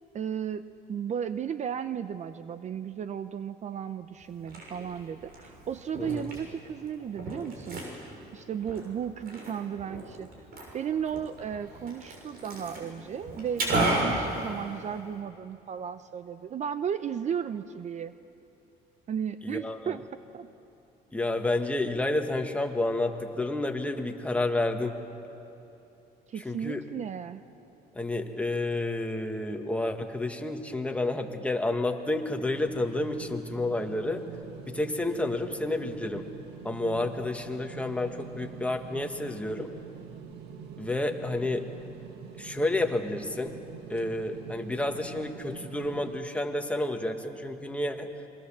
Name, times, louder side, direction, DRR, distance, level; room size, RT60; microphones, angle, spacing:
voice 1, 0.1-7.8 8.3-10.3 10.7-18.1 19.1-20.0 20.3-20.5 26.3-27.4, right 8 dB, 45° right, 12 dB, 0.7 m, -34 dB
Liquid, 4.2-15.2, right 1 dB, 65° right, 6.8 m, -35 dB
voice 2, 19.4-20.0 21.1-25.0 26.4-26.8 27.9-34.2 34.7-36.2 36.6-39.7 40.8-41.7 42.4-43.5 43.9-48.1, left 2 dB, 10° left, 4 dB, 1.8 m, -30 dB
sound 1, 32.5-46.2, right 8 dB, 80° right, 1.9 m, -45 dB
28.0 x 22.5 x 7.4 m, 2.9 s
cardioid pair, 110°, 17 cm